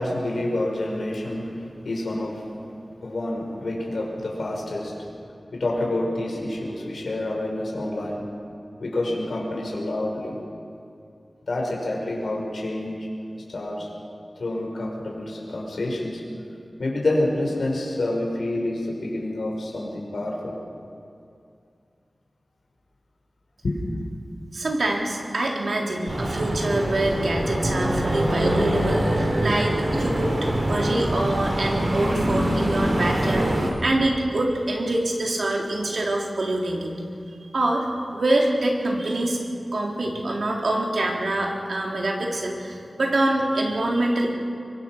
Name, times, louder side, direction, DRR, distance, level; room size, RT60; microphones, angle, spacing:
voice 1, 0.0-2.6 3.0-4.9 5.5-8.3 8.8-10.4 11.5-13.1 13.4-13.9 14.4-16.2 16.8-20.5 23.6-24.0, left 1 dB, 85° left, -1 dB, 4.8 m, -28 dB
voice 2, 24.5-36.9 37.3-37.9 38.1-39.4 39.7-44.3, right 1 dB, 75° right, 0 dB, 3.7 m, -25 dB
sound 1, 26.1-33.7, right 1 dB, 50° right, 3.8 m, -24 dB
24.0 x 23.5 x 6.1 m, 2.5 s
wide cardioid pair, 90°, 0 cm